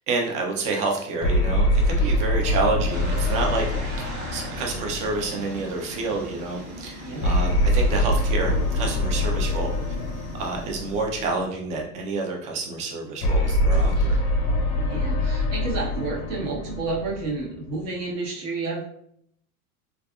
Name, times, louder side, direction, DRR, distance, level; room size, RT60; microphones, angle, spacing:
voice 1, 0.1-3.7 4.0-9.7 10.4-14.2, right 3 dB, 20° right, 1 dB, 0.3 m, -28 dB
sound 1, 1.2-5.8 7.2-11.6 13.2-17.8, left 1 dB, 35° left, 0.6 m, -24 dB
sound 2, 2.9-11.0, equal, 55° right, 1.3 m, -38 dB
voice 2, 14.9-18.8, right 3 dB, 35° right, -3 dB, 1.1 m, -30 dB
3.2 x 2.5 x 2.2 m, 0.68 s
hypercardioid pair, 90°, 45 cm